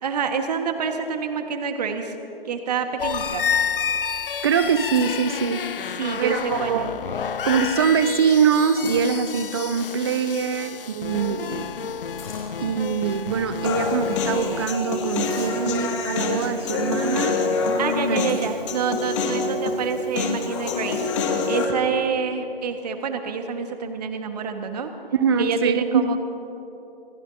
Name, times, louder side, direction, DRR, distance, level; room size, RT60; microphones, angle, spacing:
voice 1, 0.0-2.1 2.4-3.4 6.0-6.9 11.5-11.7 17.8-21.1 21.4-24.9 25.4-26.2, right 6 dB, 40° right, 5 dB, 1.5 m, -27 dB
sound 1, 3.0-14.7, left 7 dB, 65° left, 0.6 m, -30 dB
voice 2, 4.4-5.7 6.2-6.9 7.4-11.6 12.6-17.4 18.1-18.2 25.1-26.1, right 7 dB, 25° right, 12 dB, 0.6 m, -23 dB
sound 2, 4.9-5.3 5.9-6.2 6.7-6.8 7.0-7.3 8.6-9.5 10.3-10.4 10.6-10.7 12.2-12.6 13.3-13.4 13.9-14.1 15.2-16.1 16.9-17.2 17.6-17.7 18.3-18.6, left 4 dB, 10° left, 3.6 m, -43 dB
Human voice, 13.6-21.7, left 4 dB, 30° left, 2.0 m, -26 dB
27.5 x 19.0 x 2.8 m, 3.0 s
figure-of-eight pair, 145°, 30 cm